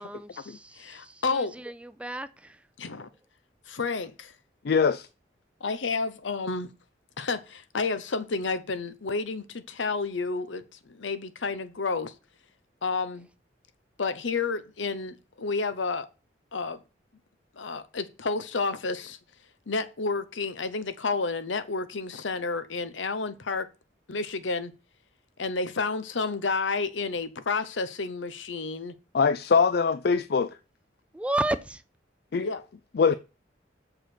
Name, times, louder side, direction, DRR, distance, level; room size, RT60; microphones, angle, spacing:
voice 1, 0.0-2.6 31.1-31.8, right 1 dB, 5° right, 0.4 m, -33 dB
voice 2, 0.8-1.5 2.8-3.1 3.7-4.3 5.6-6.7 7.2-12.1 12.8-13.3 14.0-16.1 16.5-16.8 17.6-19.2 19.7-23.7 24.1-24.7 25.4-28.9 32.4-32.6, left 4 dB, 85° left, 0.8 m, -30 dB
voice 3, 4.6-5.1 29.1-30.5 32.3-32.5 33.0-33.1, left 5 dB, 55° left, 0.4 m, -22 dB
6.6 x 4.9 x 5.9 m
head